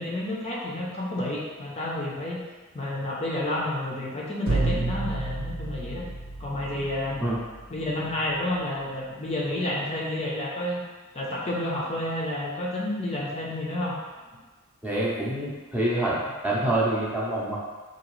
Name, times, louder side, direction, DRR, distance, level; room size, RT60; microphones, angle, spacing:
voice 1, 0.0-2.4 2.7-6.1 6.4-7.3 7.7-10.8 11.1-13.9, left 1 dB, 30° left, -4 dB, 0.5 m, -30 dB
sound 1, 4.5-8.3, right 2 dB, 75° right, 0.7 m, -31 dB
voice 2, 14.8-16.2 16.4-17.6, right 1 dB, 10° right, -6 dB, 0.7 m, -26 dB
3.9 x 2.8 x 3.0 m, 1.3 s
head